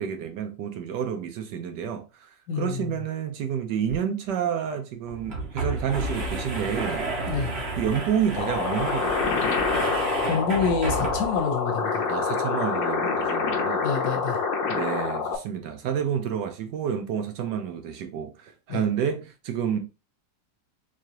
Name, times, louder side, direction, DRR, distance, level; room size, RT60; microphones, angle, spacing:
voice 1, 0.0-2.3 2.5-7.1 7.8-9.4 12.1-13.8 14.7-19.8, right 8 dB, 75° right, 1.3 m, -29 dB
voice 2, 2.5-2.9 7.3-7.5 10.3-12.0 13.8-14.4 18.7-18.8, left 5 dB, 70° left, 1.5 m, -27 dB
sound 1, 3.9-4.0 4.3-4.4 5.1-11.5, right 2 dB, 45° right, 0.9 m, -31 dB
sound 2, 8.4-15.4, left 5 dB, 90° left, 1.4 m, -26 dB
4.6 x 2.5 x 2.9 m
omnidirectional pair, 2.0 m